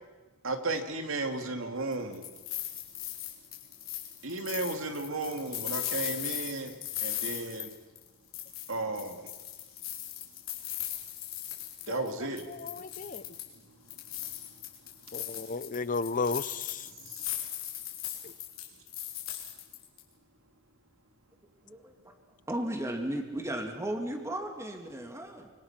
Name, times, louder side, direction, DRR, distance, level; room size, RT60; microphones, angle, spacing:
voice 1, 0.4-2.2 4.2-6.7 7.0-7.7 8.7-9.3 11.9-12.4 17.0-17.2, right 2 dB, 70° right, 5 dB, 2.6 m, -34 dB
sound 1, 1.9-8.1 8.3-12.1 12.4-13.5 13.9-20.0, left 12 dB, 75° left, 4.2 m, -38 dB
voice 2, 12.5-13.2 15.1-16.9, left 4 dB, 40° left, 16 dB, 0.7 m, -34 dB
voice 3, 21.6-22.1 22.5-25.5, right 1 dB, 15° right, 4 dB, 2.7 m, -35 dB
25.0 x 24.0 x 6.0 m, 1.2 s
head